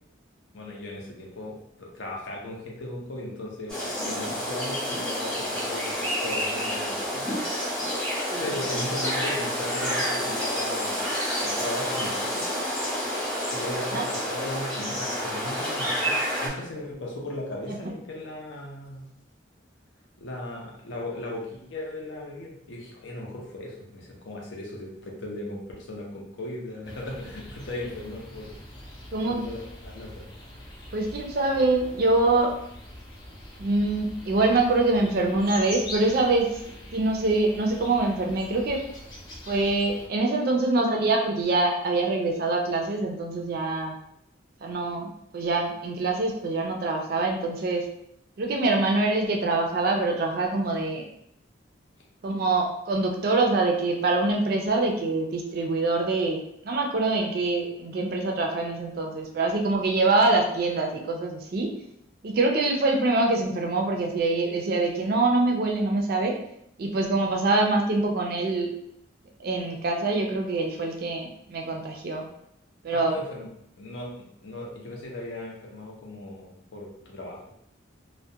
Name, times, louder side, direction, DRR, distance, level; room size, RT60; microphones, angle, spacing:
voice 1, 0.5-7.4 8.4-11.0 11.4-12.6 13.5-19.1 20.2-28.6 29.3-30.2 72.9-73.5 73.8-77.4, left 1 dB, 70° left, -1 dB, 0.6 m, -37 dB
sound 1, 3.7-16.5, equal, 5° left, 0.9 m, -29 dB
sound 2, 26.8-40.1, left 1 dB, 20° left, 0.4 m, -43 dB
voice 2, 29.1-29.4 30.9-32.5 33.6-36.5 36.9-38.8 39.5-44.0 44.6-47.8 48.4-51.0 52.2-61.7 62.2-66.4 66.8-68.7 69.4-72.3 72.8-73.1, right 2 dB, 50° right, 2 dB, 0.4 m, -24 dB
2.3 x 2.1 x 2.7 m, 0.76 s
head